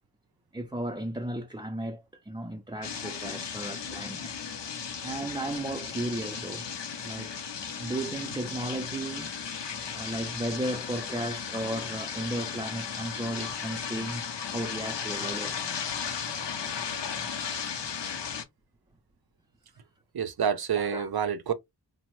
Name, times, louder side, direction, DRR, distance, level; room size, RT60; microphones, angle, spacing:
voice 1, 0.5-4.3 5.0-6.6 7.0-7.3 7.8-9.3 9.8-15.6 20.8-21.1, right 1 dB, 10° right, 0.4 m, -35 dB
sound 1, 2.8-18.4, left 6 dB, 85° left, 0.6 m, -35 dB
voice 2, 20.1-21.5, right 7 dB, 65° right, 0.6 m, -29 dB
3.0 x 2.0 x 2.9 m
wide cardioid pair, 40°, 41 cm